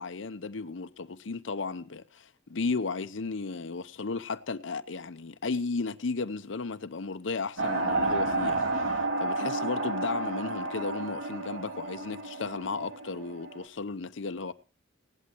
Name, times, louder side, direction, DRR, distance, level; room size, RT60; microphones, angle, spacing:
voice 1, 0.0-8.9 9.2-14.5, left 4 dB, 75° left, 0.7 m, -34 dB
sound 1, 7.6-13.6, right 2 dB, 90° right, 2.7 m, -31 dB
17.0 x 11.5 x 4.6 m
head